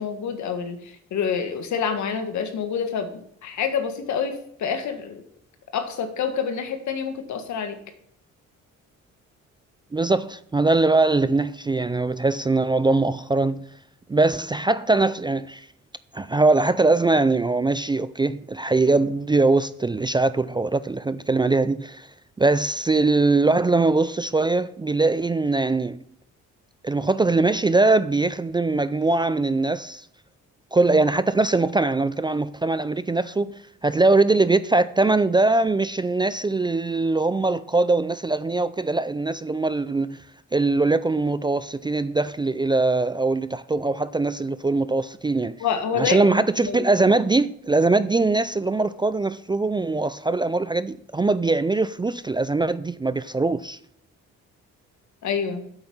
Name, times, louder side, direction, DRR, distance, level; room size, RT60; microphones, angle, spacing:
voice 1, 0.0-3.1 3.4-5.2 5.7-7.8 45.6-46.3 46.6-46.8 55.2-55.6, left 6 dB, 70° left, 1.8 m, -27 dB
voice 2, 9.9-13.7 14.1-15.7 16.1-22.1 22.4-26.0 26.8-30.0 30.7-33.5 33.8-40.2 40.5-45.6 46.0-53.8, right 3 dB, 15° right, 0.4 m, -21 dB
8.7 x 7.9 x 5.5 m
cardioid pair, 90°, 30 cm